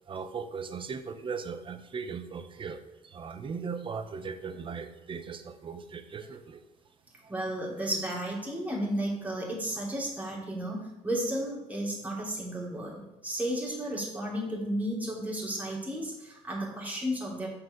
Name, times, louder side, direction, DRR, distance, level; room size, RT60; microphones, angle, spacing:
voice 1, 0.1-6.6, right 5 dB, 40° right, 9 dB, 0.8 m, -38 dB
voice 2, 7.3-17.5, right 1 dB, 10° right, -4 dB, 2.7 m, -33 dB
6.2 x 4.8 x 6.4 m, 0.99 s
cardioid pair, 90°, 13 cm